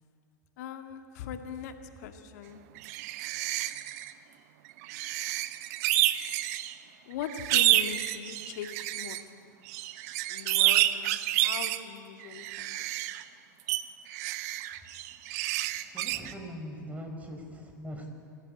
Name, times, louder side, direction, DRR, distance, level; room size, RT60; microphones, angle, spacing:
voice 1, 0.6-2.6 7.0-9.2 10.3-12.9, left 8 dB, 65° left, 6 dB, 2.2 m, -40 dB
sound 1, 2.8-4.1 4.8-6.7 7.2-9.2 9.7-11.8 12.2-13.2 13.7-13.8 14.1-16.3, right 15 dB, 60° right, 1.0 m, -29 dB
voice 2, 15.9-18.1, equal, 15° right, 4 dB, 5.0 m, -41 dB
24.5 x 16.5 x 8.9 m, 2.3 s
hypercardioid pair, 100°, 10 cm